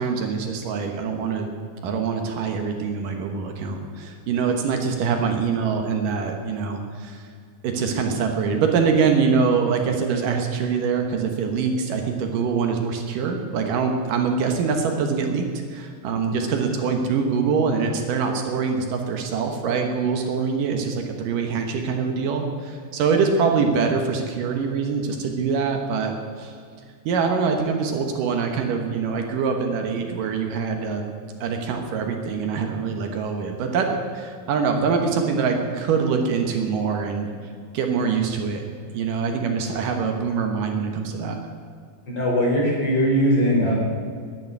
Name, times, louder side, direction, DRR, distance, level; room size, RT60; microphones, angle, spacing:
voice 1, 0.0-1.5 1.8-7.3 7.6-15.5 15.7-26.5 27.1-31.0 31.4-33.9 34.1-37.3 37.7-38.6 38.9-41.4, right 5 dB, 70° right, 4 dB, 2.7 m, -24 dB
voice 2, 42.1-43.7, equal, 30° left, -4 dB, 4.4 m, -20 dB
11.0 x 11.0 x 9.5 m, 2.2 s
omnidirectional pair, 4.1 m